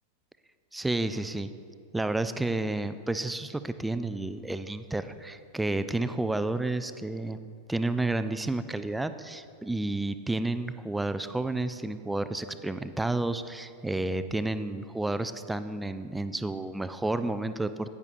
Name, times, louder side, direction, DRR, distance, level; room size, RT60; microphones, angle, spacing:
voice 1, 0.7-1.5 1.9-7.4 7.7-17.9, right 2 dB, 5° right, 11 dB, 0.3 m, -31 dB
10.5 x 9.4 x 2.5 m, 2.3 s
figure-of-eight pair, 90°, 0 cm